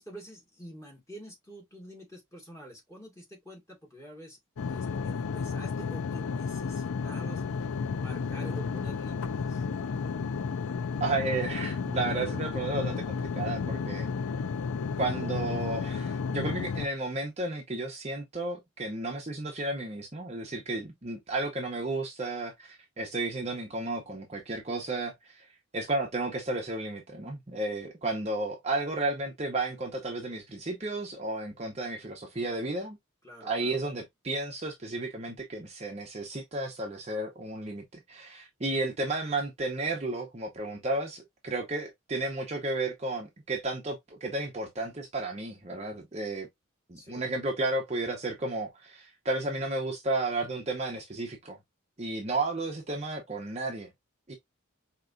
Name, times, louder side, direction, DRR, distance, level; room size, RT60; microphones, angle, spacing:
voice 1, 0.0-4.4 4.7-7.4 7.9-9.6 33.2-33.8 47.0-47.3, equal, 15° left, 2.0 m, -47 dB
sound 1, 4.6-16.9, left 5 dB, 90° left, 0.5 m, -32 dB
voice 2, 11.0-14.1 15.0-25.5 25.7-33.0 33.4-46.5 46.9-51.6 52.0-53.9 54.3-54.4, right 2 dB, 30° right, 0.8 m, -33 dB
4.7 x 2.9 x 2.5 m
head